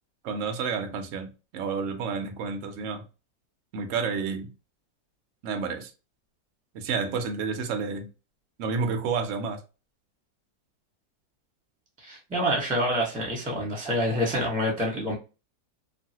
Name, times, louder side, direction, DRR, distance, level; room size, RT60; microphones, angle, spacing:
voice 1, 0.2-3.0 3.7-4.5 5.4-5.9 6.7-8.1 8.6-9.6, right 5 dB, 75° right, 0.7 m, -30 dB
voice 2, 12.0-15.1, equal, 5° right, 0.9 m, -27 dB
3.1 x 2.5 x 2.8 m
omnidirectional pair, 2.1 m